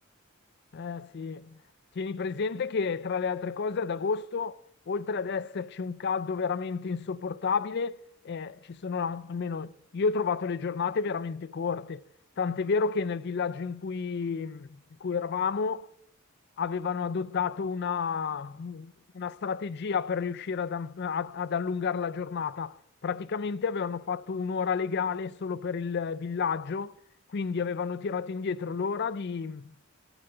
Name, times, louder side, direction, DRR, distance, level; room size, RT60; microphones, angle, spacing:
voice 1, 0.7-1.6 2.0-4.6 4.9-12.0 12.4-15.9 16.6-26.9 27.3-29.7, left 5 dB, 50° left, 0.4 m, -31 dB
13.0 x 8.9 x 6.6 m
head